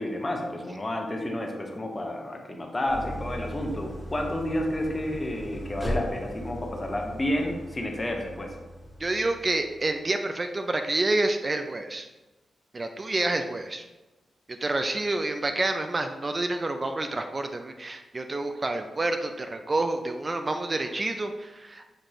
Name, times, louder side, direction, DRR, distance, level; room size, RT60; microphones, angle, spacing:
voice 1, 0.0-8.5, left 1 dB, 25° left, 1 dB, 0.8 m, -30 dB
Idling, 2.9-9.9, equal, 5° left, 1.2 m, -38 dB
voice 2, 9.0-12.1 12.7-13.9 14.6-21.9, right 2 dB, 35° right, 6 dB, 0.3 m, -28 dB
6.4 x 2.5 x 3.0 m, 1.1 s
cardioid pair, 75°, 0 cm